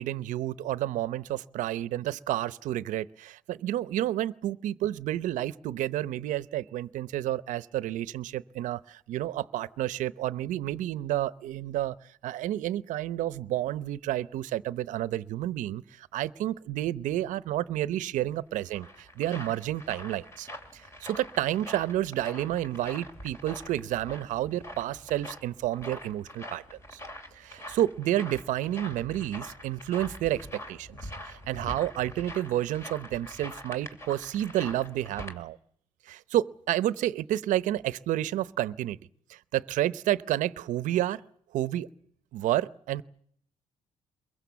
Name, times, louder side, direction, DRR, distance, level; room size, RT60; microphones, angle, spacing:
voice 1, 0.0-11.9 12.2-20.5 20.7-27.0 27.3-35.6 36.1-39.0 39.3-41.2 41.5-41.9 42.3-43.0, right 13 dB, 80° right, 17 dB, 0.9 m, -30 dB
sound 1, 18.3-35.4, left 1 dB, 20° left, 2.7 m, -44 dB
23.0 x 22.5 x 7.1 m, 0.67 s
cardioid pair, 155°, 13 cm